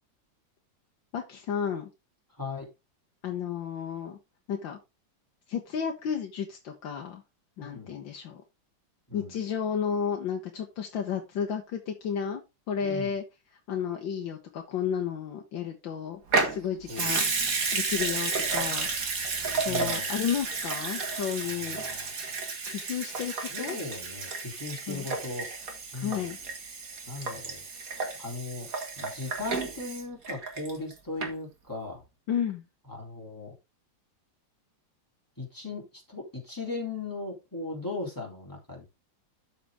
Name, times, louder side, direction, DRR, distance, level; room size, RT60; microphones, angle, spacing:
voice 1, 1.1-1.9 3.2-4.2 4.5-4.8 5.5-7.2 7.6-8.4 9.1-12.4 12.7-13.2 13.7-16.2 16.5-17.3 17.7-18.9 19.6-21.8 22.7-23.8 24.9-25.1 25.9-26.4 32.3-32.6, left 8 dB, 80° left, 3 dB, 1.8 m, -32 dB
voice 2, 2.4-2.7 7.6-8.0 9.1-9.3 12.8-13.2 16.9-17.4 19.6-20.1 21.4-22.1 23.5-25.5 25.9-26.3 27.0-27.6 28.2-28.7 29.0-32.0 32.9-33.5 35.4-38.9, left 3 dB, 10° left, -1 dB, 3.2 m, -38 dB
Water tap faucet / Sink (filling or washing) / Liquid, 16.3-30.9 31.2-31.3, right 4 dB, 50° right, 2.0 m, -32 dB
12.0 x 5.1 x 3.5 m, 0.24 s
omnidirectional pair, 2.0 m